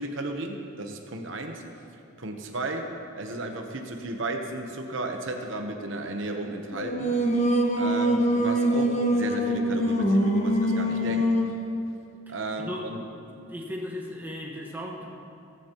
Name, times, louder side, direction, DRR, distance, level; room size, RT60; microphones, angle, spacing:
voice 1, 0.0-1.6 2.2-2.8 3.2-7.2 7.8-11.3 12.3-13.0, right 2 dB, 60° right, 3 dB, 0.9 m, -34 dB
Singing, 6.7-11.6, equal, 30° left, 1.2 m, -24 dB
voice 2, 13.2-15.1, equal, 10° right, -1 dB, 1.3 m, -36 dB
17.0 x 14.5 x 3.0 m, 2.6 s
head